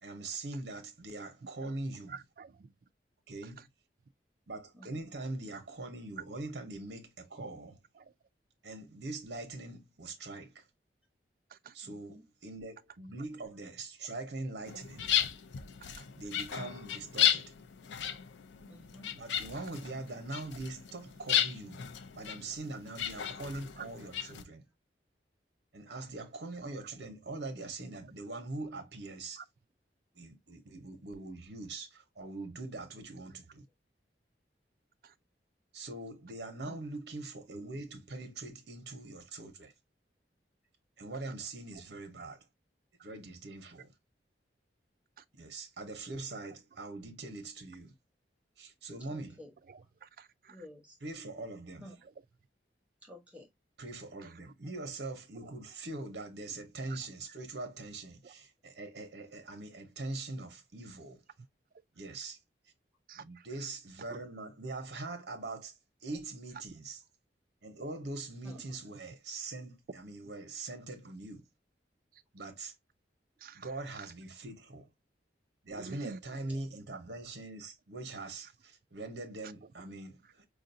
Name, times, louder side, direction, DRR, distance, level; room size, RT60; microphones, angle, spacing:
voice 1, 0.0-2.2 3.3-3.7 4.5-7.8 8.6-10.7 11.7-15.1 16.1-17.5 19.1-21.8 22.1-24.6 25.7-29.4 30.1-33.7 35.7-39.7 41.0-42.4 43.0-43.9 45.3-47.9 48.6-49.4 51.0-51.9 53.8-61.2 61.9-62.4 63.2-65.7 66.0-67.0 67.6-71.4 72.3-72.7 73.5-74.9 75.6-80.5, right 2 dB, 70° right, 0.9 m, -42 dB
voice 2, 2.1-2.7 3.4-3.5 8.0-8.1 11.5-11.7 15.2-15.3 15.8-16.0 23.5-23.9 29.4-29.5 35.0-35.1 36.6-36.7 41.7-41.8 43.0-43.1 45.2-45.3 49.7-50.6 55.4-55.5 56.9-57.0 58.2-58.3 63.1-63.4 64.1-64.2 72.1-72.2 73.4-73.7 75.7-76.2, right 5 dB, 50° right, 0.3 m, -49 dB
voice 3, 4.7-5.1 11.8-12.3 18.7-19.2 36.7-36.8 49.1-49.5 49.8-49.9 50.5-51.0 51.8-52.0 53.0-53.5 68.4-68.6 76.4-76.6, left 1 dB, 10° right, 1.1 m, -52 dB
sound 1, 14.7-24.4, left 9 dB, 80° left, 0.4 m, -34 dB
4.8 x 2.5 x 2.6 m
head